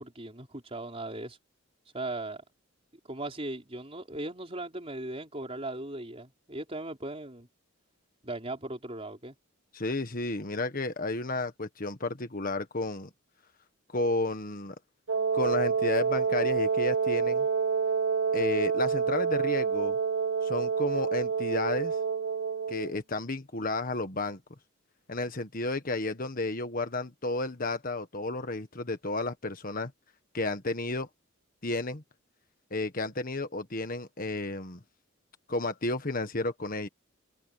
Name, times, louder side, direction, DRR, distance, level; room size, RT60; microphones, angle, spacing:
voice 1, 0.0-1.4 1.9-2.4 3.1-7.5 8.2-9.3, right 2 dB, 30° right, 4.2 m, -38 dB
voice 2, 9.7-13.1 13.9-14.7 15.3-17.5 18.3-20.0 20.4-22.0 22.7-24.4 25.1-29.9 30.3-31.1 31.6-32.0 32.7-34.8 35.5-36.9, left 2 dB, 40° left, 1.5 m, -32 dB
Wind instrument woodwind instrument, 15.1-22.9, right 5 dB, 80° right, 1.9 m, -28 dB
open air
head